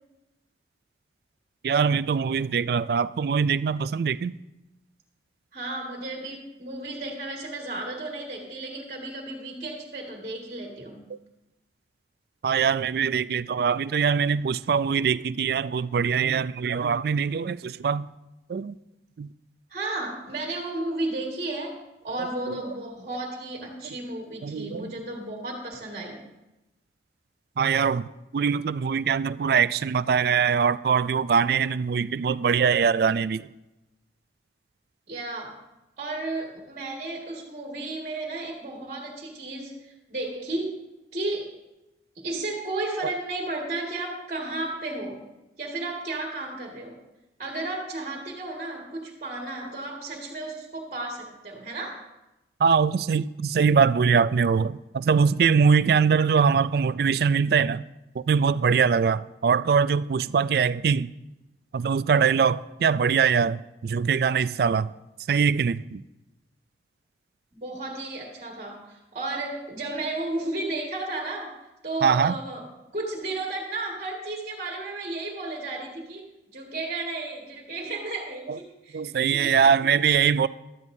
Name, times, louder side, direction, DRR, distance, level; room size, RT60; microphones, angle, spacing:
voice 1, 1.6-4.3 12.4-18.1 18.5-18.8 19.2-19.3 22.5-22.6 24.4-24.9 27.6-28.1 28.3-33.4 52.6-57.8 58.2-61.1 61.7-64.9 65.3-66.0 72.0-72.3 78.5-78.6 78.9-80.5, right 6 dB, 55° right, 0.3 m, -22 dB
voice 2, 5.5-11.0 19.7-26.2 35.1-35.6 36.0-40.8 41.1-41.5 42.2-45.2 45.6-47.0 47.4-52.0 67.5-71.5 71.8-76.3 76.5-79.5, right 2 dB, 40° right, 1.9 m, -33 dB
15.5 x 12.5 x 2.7 m
head